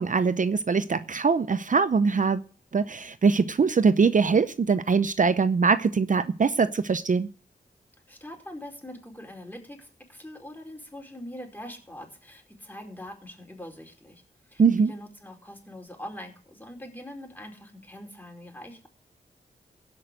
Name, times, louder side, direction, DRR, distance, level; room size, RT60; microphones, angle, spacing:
voice 1, 0.0-2.4 2.7-7.3 14.6-14.9, right 5 dB, 50° right, 0.6 m, -22 dB
voice 2, 8.1-14.2 14.5-18.9, left 1 dB, 10° left, 4.8 m, -43 dB
16.0 x 6.1 x 7.7 m
cardioid pair, 45°, 18 cm